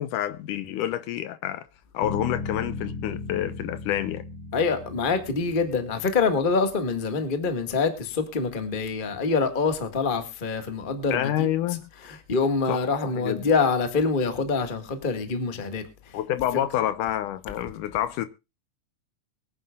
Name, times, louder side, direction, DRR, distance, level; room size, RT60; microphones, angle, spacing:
voice 1, 0.0-1.6 1.9-4.2 11.1-11.8 12.7-13.5 16.1-18.3, left 12 dB, 75° left, 2.2 m, -28 dB
Bass guitar, 2.0-6.4, left 4 dB, 55° left, 4.1 m, -36 dB
voice 2, 4.5-11.5 12.0-15.8, left 4 dB, 35° left, 0.8 m, -25 dB
23.5 x 9.7 x 2.4 m
omnidirectional pair, 4.0 m